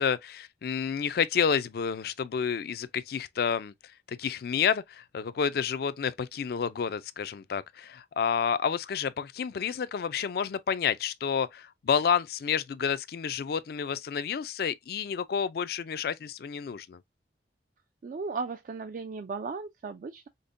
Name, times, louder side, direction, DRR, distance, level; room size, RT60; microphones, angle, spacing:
voice 1, 0.0-3.7 4.1-17.0, left 7 dB, 60° left, 0.4 m, -30 dB
voice 2, 18.0-20.3, right 4 dB, 45° right, 0.3 m, -36 dB
5.2 x 2.1 x 2.5 m
head